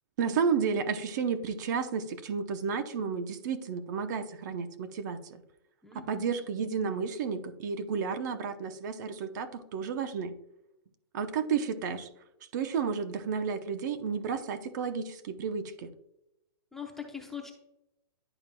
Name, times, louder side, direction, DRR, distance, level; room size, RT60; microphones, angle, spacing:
voice 1, 0.2-5.4 5.9-10.4 11.1-12.1 12.5-15.9, right 6 dB, 45° right, 10 dB, 0.8 m, -32 dB
voice 2, 5.8-6.3 16.7-17.5, left 7 dB, ahead, 1 dB, 0.7 m, -42 dB
11.0 x 4.6 x 2.2 m, 0.86 s
hypercardioid pair, 165°, 13 cm